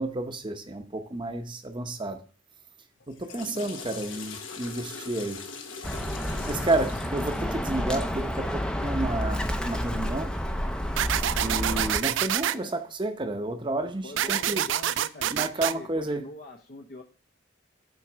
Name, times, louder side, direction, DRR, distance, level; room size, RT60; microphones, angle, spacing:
voice 1, 0.0-2.2 3.1-5.4 6.5-10.3 11.4-14.6 15.3-16.3, right 2 dB, 25° right, 0.8 m, -31 dB
Water / Toilet flush, 3.0-8.3, left 4 dB, 80° left, 1.2 m, -41 dB
Bird, 5.8-12.0, equal, 5° left, 0.5 m, -30 dB
sound 1, 11.0-12.6 14.2-15.7, right 11 dB, 70° right, 0.4 m, -26 dB
voice 2, 12.3-12.7 14.0-17.0, left 1 dB, 45° left, 0.7 m, -43 dB
7.4 x 4.5 x 6.0 m
head